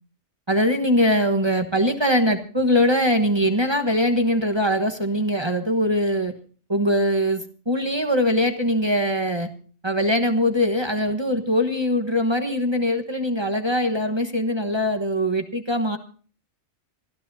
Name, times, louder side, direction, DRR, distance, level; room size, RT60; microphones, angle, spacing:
voice 1, 0.5-6.3 6.7-9.5 9.8-16.0, equal, 25° right, 6 dB, 1.2 m, -22 dB
26.5 x 13.0 x 2.7 m, 0.41 s
omnidirectional pair, 1.2 m